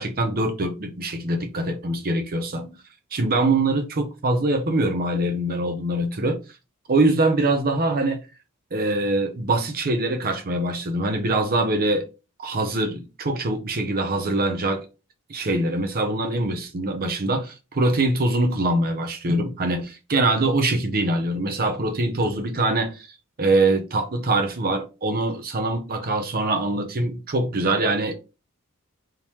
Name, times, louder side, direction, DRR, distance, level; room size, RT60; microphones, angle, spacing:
voice 1, 0.0-2.7 3.1-6.4 6.9-8.2 8.7-12.0 12.4-14.9 15.3-23.1 23.4-28.1, right 2 dB, 45° right, 0.7 m, -23 dB
3.6 x 2.9 x 3.1 m
head